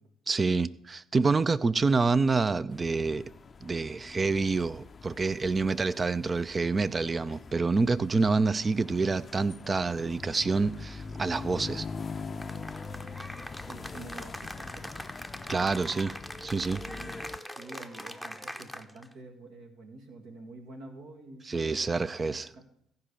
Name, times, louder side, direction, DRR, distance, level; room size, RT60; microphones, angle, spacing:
voice 1, 0.3-3.2 3.6-11.9 15.5-16.1 16.4-16.8 21.5-22.5, right 4 dB, 30° right, 0.5 m, -27 dB
sound 1, 2.7-17.4, left 4 dB, 35° left, 0.5 m, -43 dB
Cheering / Applause, 12.4-19.1, equal, 5° right, 0.9 m, -42 dB
voice 2, 13.6-15.1 16.9-17.3 17.6-22.6, right 2 dB, 70° right, 2.0 m, -48 dB
14.5 x 5.2 x 7.0 m
hypercardioid pair, 50°, 0 cm